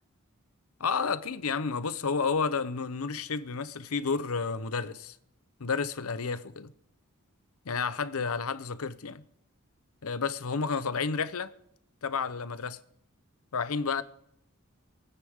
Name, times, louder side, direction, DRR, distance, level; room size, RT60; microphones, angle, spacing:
voice 1, 0.8-5.2 5.6-6.7 7.6-9.2 10.0-11.5 12.0-12.8 13.5-14.0, left 5 dB, 85° left, 0.8 m, -31 dB
27.0 x 9.8 x 3.6 m
head